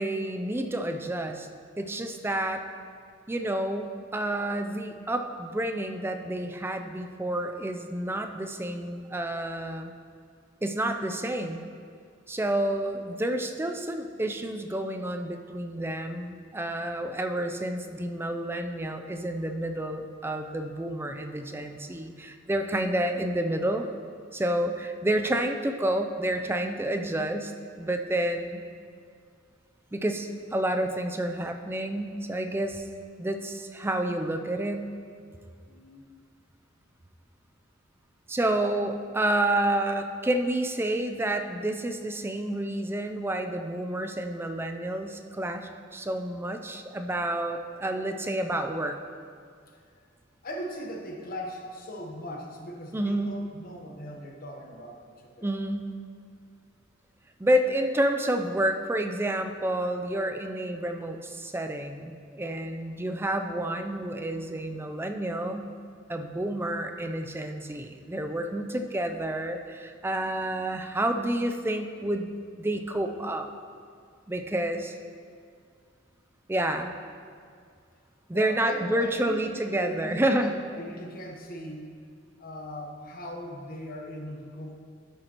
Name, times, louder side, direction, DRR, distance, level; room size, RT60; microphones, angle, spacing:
voice 1, 0.0-1.5 1.8-2.6 3.3-9.9 10.6-11.6 12.3-23.9 24.3-28.6 29.9-32.8 33.2-34.9 38.3-49.0 52.9-53.3 55.4-55.9 57.4-65.7 66.1-73.5 74.3-74.9 76.5-76.9 78.3-80.5, right 1 dB, 10° right, 6 dB, 0.4 m, -29 dB
voice 2, 35.7-36.0 38.5-38.7 50.4-55.5 78.3-81.9 82.4-84.8, equal, 45° left, 1 dB, 1.0 m, -39 dB
11.5 x 7.9 x 3.0 m, 2.2 s
head